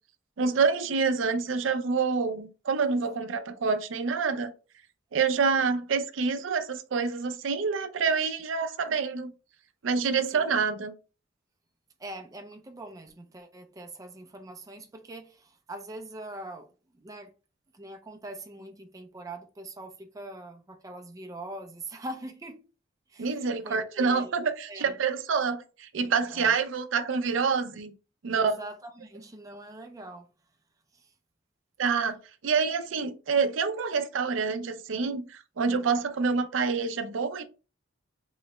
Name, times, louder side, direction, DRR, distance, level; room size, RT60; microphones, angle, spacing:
voice 1, 0.4-4.5 5.1-9.3 9.8-10.9 23.2-27.9 28.2-28.6 31.8-32.2 32.4-37.4, right 5 dB, 80° right, 0.5 m, -27 dB
voice 2, 12.0-16.7 16.9-17.3 17.7-22.6 23.1-24.3 24.7-25.0 26.3-26.6 28.3-30.3 30.9-31.1, right 1 dB, 20° right, 0.4 m, -43 dB
3.8 x 2.2 x 3.0 m
head